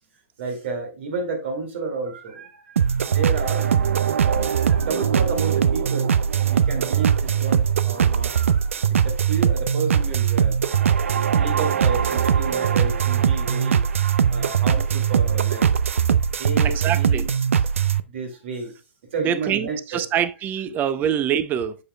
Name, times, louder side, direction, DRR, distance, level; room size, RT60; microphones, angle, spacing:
voice 1, 0.4-3.7 4.2-6.1 6.5-10.6 11.2-15.7 16.4-17.3 18.1-18.7 19.1-20.1 20.6-20.8, right 4 dB, 65° right, 2.2 m, -31 dB
sound 1, 2.8-18.0, right 8 dB, 80° right, 0.5 m, -21 dB
voice 2, 16.6-17.2 19.2-21.8, right 9 dB, 25° right, 0.6 m, -25 dB
7.8 x 7.1 x 2.2 m
hypercardioid pair, 120°, 7 cm